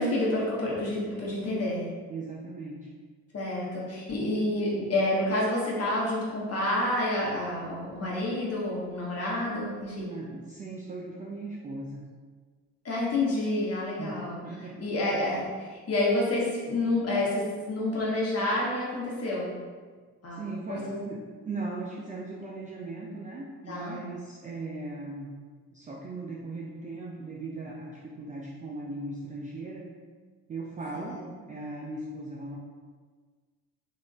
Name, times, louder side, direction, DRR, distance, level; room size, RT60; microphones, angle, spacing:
voice 1, 0.0-1.9 3.3-10.1 12.8-14.4 14.8-19.5 20.2-20.4 20.7-21.0 23.7-24.0 30.9-31.2, left 1 dB, 30° left, -5 dB, 1.3 m, -29 dB
voice 2, 2.1-2.9 10.0-12.0 14.0-14.8 20.3-25.3 25.7-30.0 30.5-32.6, right 2 dB, 20° right, -3 dB, 0.4 m, -38 dB
3.7 x 3.5 x 2.4 m, 1.5 s
figure-of-eight pair, 50°, 45 cm